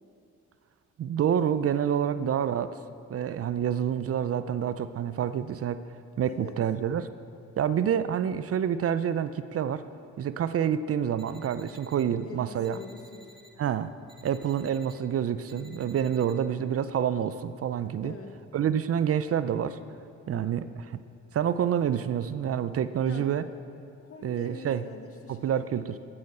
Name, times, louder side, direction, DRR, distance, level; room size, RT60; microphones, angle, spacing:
voice 1, 1.0-2.7 3.1-5.8 6.2-7.1 7.6-9.8 10.2-12.8 13.6-13.9 14.2-18.1 18.5-19.8 20.3-20.6 21.3-23.4 24.2-24.8 25.3-26.0, right 9 dB, 50° right, 13 dB, 0.6 m, -27 dB
voice 2, 6.3-6.6 12.2-13.7 15.5-15.9 18.0-18.4 20.2-20.7 23.1-23.3 24.0-26.0, left 4 dB, 50° left, 4 dB, 1.8 m, -45 dB
sound 1, 11.2-12.0 12.6-13.5 14.1-14.9 15.5-16.3, right 1 dB, 15° right, 1.8 m, -55 dB
13.5 x 8.8 x 7.9 m, 2.5 s
cardioid pair, 90°, 30 cm